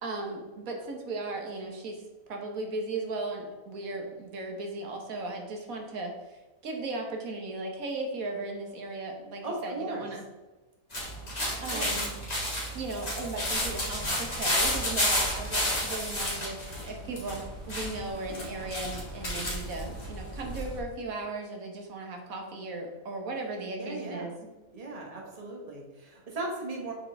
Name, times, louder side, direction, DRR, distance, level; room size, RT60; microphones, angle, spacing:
voice 1, 0.0-10.2 11.6-12.1 12.7-24.5, right 2 dB, 70° right, 2 dB, 1.5 m, -37 dB
voice 2, 9.4-10.1 11.5-12.0 23.8-24.3 24.7-26.9, right 2 dB, 25° right, -1 dB, 1.3 m, -37 dB
sound 1, 10.9-20.8, left 1 dB, 25° left, 1.9 m, -31 dB
sound 2, 11.0-18.1, right 3 dB, 90° left, 1.8 m, -46 dB
7.3 x 4.4 x 3.5 m, 1.2 s
omnidirectional pair, 1.6 m